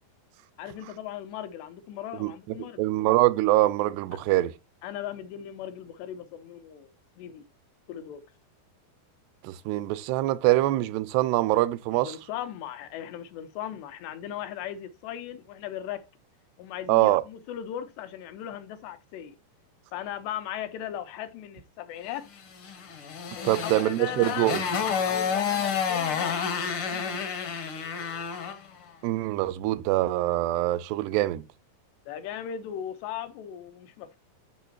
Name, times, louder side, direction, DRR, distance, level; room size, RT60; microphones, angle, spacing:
voice 1, 0.6-2.8 4.8-7.4 7.9-8.2 12.0-16.0 16.6-19.4 19.9-22.4 23.3-24.5 24.9-26.5 26.9-27.2 32.1-34.2, left 10 dB, 85° left, 3.2 m, -38 dB
voice 2, 2.6-4.6 9.4-12.2 16.9-17.2 23.4-24.6 29.0-31.5, right 17 dB, 85° right, 2.7 m, -24 dB
Motorcycle, 22.6-28.7, left 7 dB, 65° left, 1.3 m, -30 dB
13.5 x 5.3 x 2.8 m
omnidirectional pair, 4.8 m